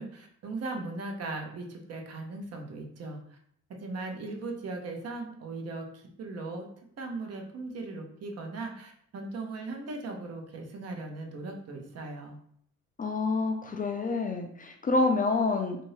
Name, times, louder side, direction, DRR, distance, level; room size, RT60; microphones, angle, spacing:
voice 1, 0.0-3.2 3.8-6.7 7.0-12.4, right 3 dB, 55° right, 2 dB, 0.8 m, -38 dB
voice 2, 13.0-15.8, left 3 dB, 30° left, 4 dB, 0.4 m, -27 dB
2.7 x 2.7 x 3.1 m, 0.66 s
cardioid pair, 90°, 30 cm